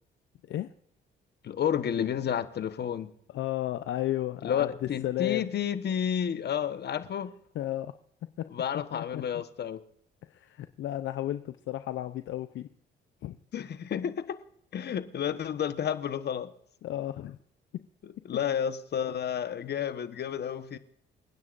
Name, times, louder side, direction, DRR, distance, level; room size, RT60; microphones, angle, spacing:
voice 1, 1.4-3.1 4.4-7.3 8.5-9.8 13.5-14.4 14.7-16.5 18.2-20.8, left 8 dB, 55° left, 11 dB, 1.2 m, -31 dB
voice 2, 3.3-5.5 7.5-7.9 8.4-8.5 8.9-9.2 10.3-12.7 13.2-13.4 16.8-17.4 17.7-17.9, left 13 dB, 75° left, 10 dB, 0.7 m, -33 dB
29.0 x 9.7 x 2.6 m, 0.68 s
cardioid pair, 90°, 20 cm